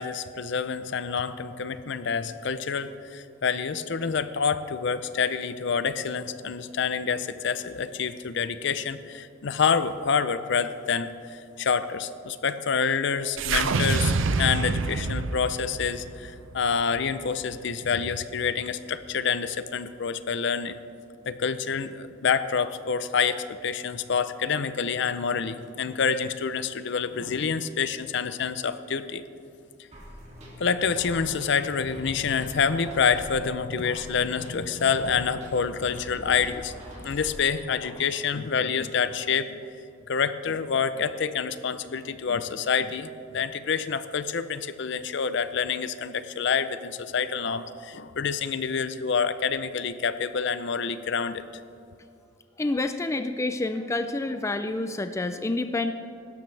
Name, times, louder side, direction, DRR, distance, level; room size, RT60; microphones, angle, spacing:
voice 1, 0.0-20.8 21.3-29.2 30.6-36.7 37.0-39.5 40.1-51.4, left 6 dB, 60° left, 12 dB, 0.6 m, -27 dB
sound 1, 13.4-17.7, right 4 dB, 70° right, 0.6 m, -27 dB
sound 2, 29.9-37.9, equal, 35° right, 2.6 m, -44 dB
voice 2, 52.6-55.9, left 2 dB, 15° left, 9 dB, 0.4 m, -28 dB
16.5 x 13.0 x 3.3 m, 2.5 s
head